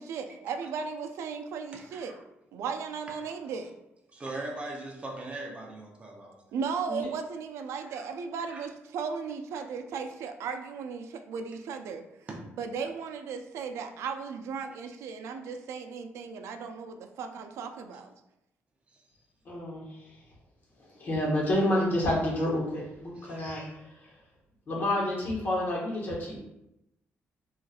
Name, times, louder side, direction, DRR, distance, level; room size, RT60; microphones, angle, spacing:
voice 1, 0.0-2.1 2.5-3.7 6.5-12.0 12.6-18.1, right 5 dB, 80° right, 6 dB, 0.3 m, -36 dB
voice 2, 1.7-2.2 3.3-3.4 4.1-6.5 7.8-8.1 8.5-8.7 9.6-9.7 12.3-12.6 23.2-23.4, right 2 dB, 25° right, 0 dB, 0.5 m, -41 dB
voice 3, 19.4-19.8 21.0-23.7 24.7-26.4, left 1 dB, 45° left, -4 dB, 1.1 m, -28 dB
4.0 x 2.4 x 2.3 m, 0.87 s
cardioid pair, 150°, 5 cm